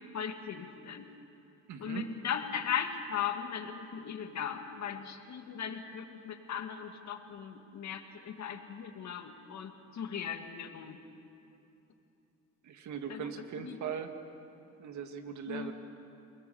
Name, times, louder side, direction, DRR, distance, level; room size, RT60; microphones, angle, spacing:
voice 1, 0.1-1.1 1.8-11.0 13.1-13.3 13.6-13.8 15.5-15.7, left 8 dB, 65° left, 5 dB, 2.1 m, -38 dB
voice 2, 1.7-2.1 12.6-14.1 14.8-15.7, right 7 dB, 70° right, 6 dB, 2.0 m, -39 dB
29.0 x 20.5 x 7.1 m, 2.8 s
cardioid pair, 90°, 30 cm